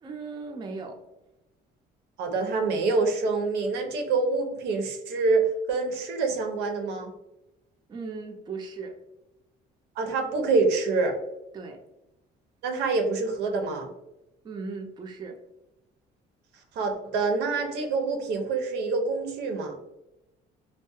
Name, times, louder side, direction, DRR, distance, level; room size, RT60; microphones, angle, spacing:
voice 1, 0.0-1.0 7.9-9.0 11.5-11.8 14.4-15.4, right 4 dB, 25° right, 2 dB, 0.4 m, -37 dB
voice 2, 2.2-7.1 10.0-11.2 12.6-13.9 16.7-19.7, right 3 dB, 80° right, 4 dB, 0.5 m, -26 dB
2.6 x 2.1 x 2.3 m, 0.92 s
cardioid pair, 110°, 17 cm